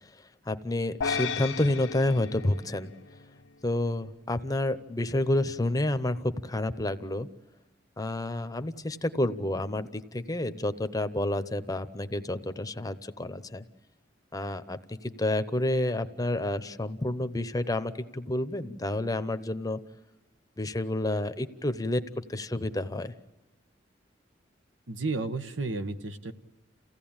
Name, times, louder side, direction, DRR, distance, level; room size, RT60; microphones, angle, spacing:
voice 1, 0.5-2.9 3.6-7.3 8.0-13.6 14.3-19.8 20.6-23.1, left 1 dB, 20° left, 11 dB, 0.8 m, -29 dB
sound 1, 1.0-3.5, left 5 dB, 85° left, 0.8 m, -34 dB
voice 2, 24.9-26.3, right 3 dB, 85° right, 9 dB, 1.3 m, -32 dB
29.0 x 16.5 x 8.8 m, 1.1 s
head